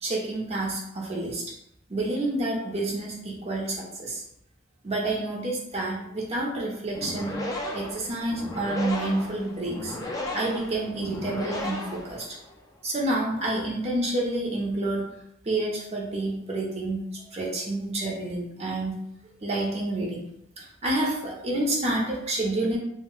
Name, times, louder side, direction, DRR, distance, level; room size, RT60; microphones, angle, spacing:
voice 1, 0.0-1.4 1.9-4.2 4.8-7.4 7.7-10.0 10.3-12.4 12.8-15.1 15.4-19.0 19.4-20.2 20.6-22.8, right 2 dB, 30° right, -3 dB, 0.6 m, -29 dB
sound 1, 6.9-12.6, left 1 dB, 15° left, 0.4 m, -35 dB
2.1 x 2.1 x 3.7 m, 0.76 s
head